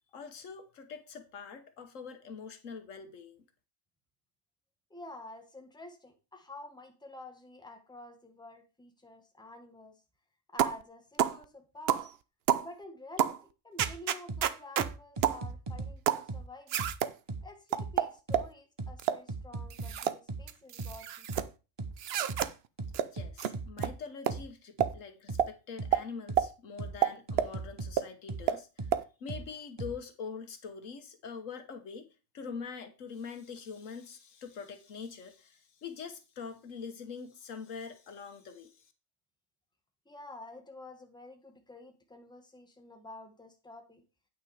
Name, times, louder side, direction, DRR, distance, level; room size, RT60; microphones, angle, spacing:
voice 1, 0.1-3.4 23.1-28.9 29.2-32.1 32.3-38.9, left 5 dB, 80° left, 1.5 m, -44 dB
voice 2, 4.9-10.0 10.5-12.1 12.6-13.4 13.6-16.9 17.4-21.5 40.0-44.0, left 2 dB, 5° left, 1.3 m, -49 dB
sound 1, 10.6-10.8 11.2-11.4 11.9-12.1 12.5-12.7 13.2-13.4 13.8-14.9 15.2-15.4 16.1-16.3 16.7-17.1 17.7-18.5 19.0-19.2 19.7-20.2 20.5-21.5 22.0-22.5 22.9-23.1 23.4-23.5 23.8-23.9 24.3-24.4 24.8-24.9 25.4-25.5 25.9-26.0 26.4-26.5 27.0-27.5 28.0-28.1 28.5-28.6 28.9-29.0, right 10 dB, 60° right, 0.8 m, -29 dB
sound 2, 13.8-13.9 14.3-14.4 14.8-15.9 16.3-16.4 16.8-16.9 17.3-17.4 17.8-17.9 18.3-18.4 18.8-18.9 19.3-19.9 20.3-20.4 20.8-20.9 21.3-21.4 21.8-21.9 22.3-22.4 22.8-23.9 24.3-24.4 24.8-24.9 25.3-25.4 25.8-25.9 26.3-26.4 26.8-26.9 27.3-27.9 28.3-28.4 28.8-28.9 29.3-29.4 29.8-29.9, right 3 dB, 25° right, 0.9 m, -37 dB
8.9 x 6.1 x 4.8 m
omnidirectional pair, 1.3 m